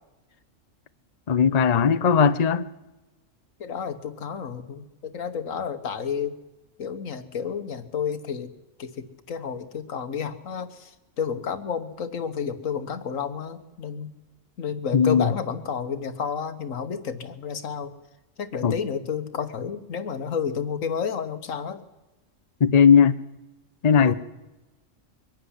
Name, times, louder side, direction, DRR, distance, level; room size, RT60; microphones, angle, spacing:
voice 1, 1.3-2.7 14.9-15.3 18.6-18.7 22.6-23.1 23.8-24.1, left 6 dB, 40° left, 0.7 m, -18 dB
voice 2, 3.6-6.3 6.8-8.5 8.8-14.1 14.6-17.9 18.4-21.8 24.0-24.1, left 7 dB, 85° left, 1.7 m, -31 dB
23.0 x 12.0 x 9.9 m
omnidirectional pair, 1.3 m